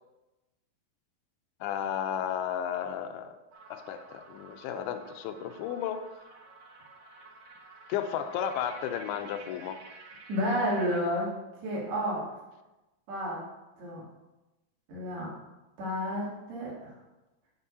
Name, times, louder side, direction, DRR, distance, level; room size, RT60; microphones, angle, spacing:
voice 1, 1.6-3.4 3.7-6.1 7.9-9.8, left 9 dB, 85° left, 7 dB, 2.5 m, -33 dB
sound 1, 3.5-11.0, right 3 dB, 65° right, 2.3 m, -52 dB
voice 2, 10.3-11.3 11.6-12.2 13.1-13.4 13.8-14.0 14.9-15.3 15.8-16.9, equal, 85° right, -6 dB, 4.6 m, -30 dB
14.5 x 5.5 x 2.8 m, 1.0 s
omnidirectional pair, 4.5 m